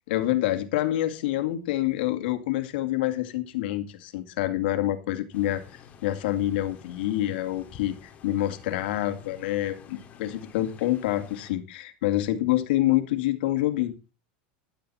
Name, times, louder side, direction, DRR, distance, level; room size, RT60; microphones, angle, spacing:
voice 1, 0.1-13.9, left 14 dB, 70° left, 2.3 m, -27 dB
sound 1, 5.3-11.5, left 7 dB, 30° left, 2.5 m, -50 dB
13.0 x 11.5 x 4.3 m
supercardioid pair, 150°, 5 cm